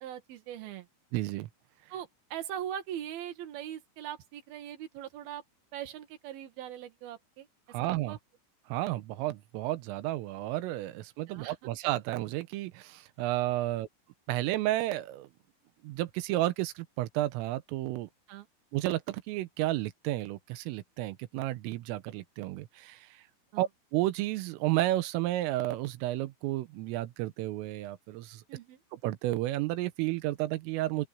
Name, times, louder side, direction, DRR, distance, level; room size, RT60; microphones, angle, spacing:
voice 1, 0.0-0.9 1.9-5.4 5.7-7.5 7.8-8.2 11.3-11.5 18.3-18.5 23.5-23.7 28.5-28.8, right 10 dB, 60° right, 3.2 m, -41 dB
voice 2, 1.1-1.5 7.7-8.2 8.7-13.9 14.3-15.3 15.8-18.1 18.7-23.2 23.6-28.4 28.9-31.1, right 16 dB, 90° right, 3.6 m, -32 dB
open air
omnidirectional pair, 5.7 m